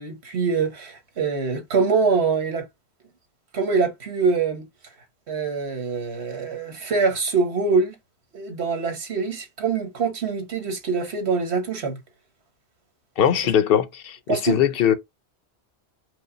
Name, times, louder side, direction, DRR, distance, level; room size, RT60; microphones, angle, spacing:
voice 1, 0.0-2.6 3.5-4.7 5.3-8.0 8.3-12.0 14.3-14.6, right 4 dB, 85° right, 1.5 m, -24 dB
voice 2, 13.2-14.9, left 9 dB, 65° left, 0.8 m, -20 dB
5.1 x 2.1 x 3.8 m
omnidirectional pair, 1.1 m